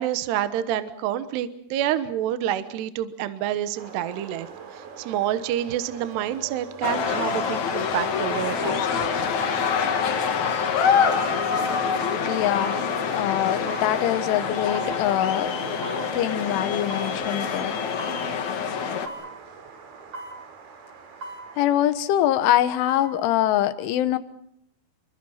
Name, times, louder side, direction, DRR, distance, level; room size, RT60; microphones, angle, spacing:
voice 1, 0.0-4.5 4.7-9.1, right 11 dB, 70° right, 12 dB, 2.7 m, -28 dB
sound 1, 3.7-21.9, right 6 dB, 55° right, 4.1 m, -43 dB
sound 2, 6.1-6.3 7.3-7.5 8.3-8.6 9.4-9.7 10.4-10.7 11.5-11.8 12.6-12.8 13.7-13.9 14.7-15.0 15.8-16.1 16.9-17.2 18.0-18.2 19.1-19.3 20.1-20.4 21.2-21.5 22.6-23.1 23.5-23.6, right 2 dB, 30° right, 5.9 m, -38 dB
sound 3, 6.8-19.1, left 6 dB, 60° left, 2.0 m, -26 dB
voice 2, 12.2-12.8 13.1-15.6 16.1-17.7 21.6-24.2, left 12 dB, 75° left, 13 dB, 3.5 m, -24 dB
28.5 x 24.0 x 5.8 m, 0.71 s
omnidirectional pair, 5.9 m